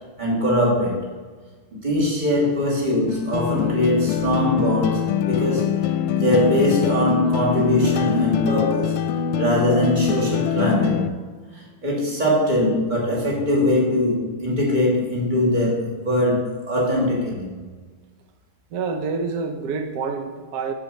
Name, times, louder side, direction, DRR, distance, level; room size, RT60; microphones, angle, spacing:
voice 1, 0.2-1.0 1.8-5.8 6.1-9.0 9.4-11.1 11.8-17.6, left 1 dB, 20° right, -4 dB, 2.5 m, -21 dB
sound 1, 3.1-11.1, left 9 dB, 80° left, 1.4 m, -24 dB
voice 2, 18.7-20.7, right 4 dB, 60° right, 6 dB, 1.1 m, -27 dB
7.8 x 7.3 x 5.3 m, 1.4 s
omnidirectional pair, 2.4 m